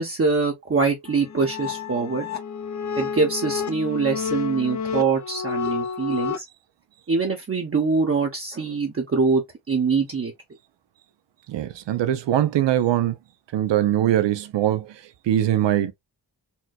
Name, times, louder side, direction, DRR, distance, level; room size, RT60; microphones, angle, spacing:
voice 1, 0.0-2.3 3.0-6.4 7.1-10.3, right 4 dB, 30° right, 0.8 m, -24 dB
sound 1, 1.1-6.4, left 6 dB, 40° left, 0.7 m, -30 dB
voice 2, 11.5-13.2 13.5-15.9, right 12 dB, 85° right, 0.6 m, -22 dB
4.4 x 2.2 x 2.2 m
cardioid pair, 80°, 42 cm